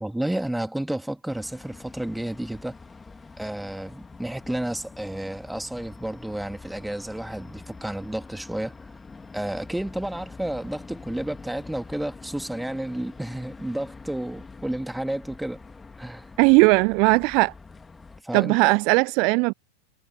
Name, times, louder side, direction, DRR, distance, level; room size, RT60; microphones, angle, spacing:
voice 1, 0.0-2.7 3.4-8.7 9.3-15.6 16.0-16.3 18.2-18.7, right 1 dB, 5° right, 2.8 m, -31 dB
sound 1, 1.3-18.2, left 4 dB, 10° left, 2.3 m, -45 dB
voice 2, 16.4-17.5 18.3-19.5, right 32 dB, 45° right, 0.5 m, -18 dB
figure-of-eight pair, 90°, 0 cm